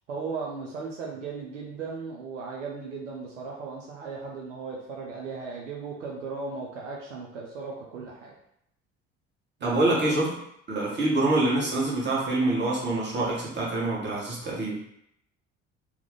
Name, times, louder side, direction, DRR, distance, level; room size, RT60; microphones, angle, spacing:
voice 1, 0.1-8.3 9.6-9.8, right 4 dB, 80° right, -2 dB, 0.6 m, -36 dB
voice 2, 9.6-10.3 10.7-14.8, right 2 dB, 30° right, -5 dB, 1.4 m, -25 dB
3.0 x 2.2 x 3.7 m, 0.75 s
figure-of-eight pair, 55°, 36 cm